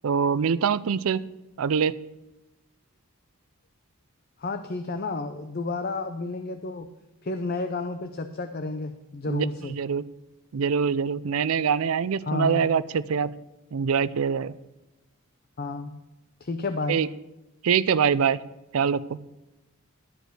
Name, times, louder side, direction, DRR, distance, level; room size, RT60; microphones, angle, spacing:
voice 1, 0.0-1.2 1.6-1.9 9.3-10.0 10.5-13.3 13.7-14.6 16.9-17.1 17.6-18.4 18.7-19.2, right 6 dB, 80° right, 17 dB, 0.4 m, -24 dB
voice 2, 4.4-6.9 7.2-9.7 12.2-12.6 15.6-15.9 16.4-17.0, left 3 dB, 45° left, 8 dB, 0.6 m, -31 dB
12.5 x 5.1 x 7.7 m, 1.0 s
head